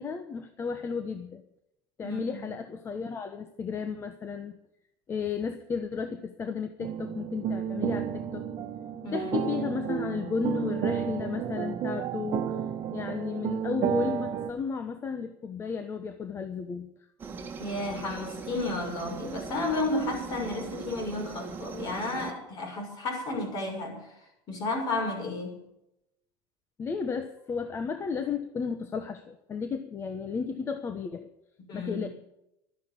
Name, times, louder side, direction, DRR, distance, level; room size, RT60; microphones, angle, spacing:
voice 1, 0.0-1.4 2.0-4.6 5.1-8.4 9.1-12.6 12.9-16.9 26.8-31.3 31.7-32.1, left 5 dB, 25° left, 8 dB, 1.1 m, -33 dB
voice 2, 2.0-2.5 9.0-9.3 17.6-24.1 24.5-25.6 31.7-32.1, left 2 dB, 40° left, 2 dB, 6.5 m, -32 dB
sound 1, 6.8-14.5, right 8 dB, 45° right, 1.4 m, -31 dB
Aircraft, 17.2-22.3, right 4 dB, 20° right, 1.8 m, -40 dB
13.0 x 10.5 x 8.5 m, 0.84 s
cardioid pair, 145°, 10 cm